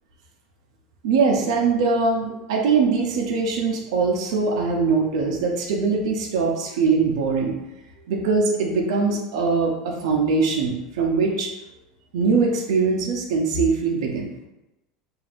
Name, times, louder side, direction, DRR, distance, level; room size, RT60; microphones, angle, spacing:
voice 1, 1.0-7.6 8.1-11.5 12.1-14.3, right 4 dB, 80° right, -1 dB, 0.7 m, -22 dB
5.8 x 2.7 x 2.5 m, 0.97 s
supercardioid pair, 145°, 3 cm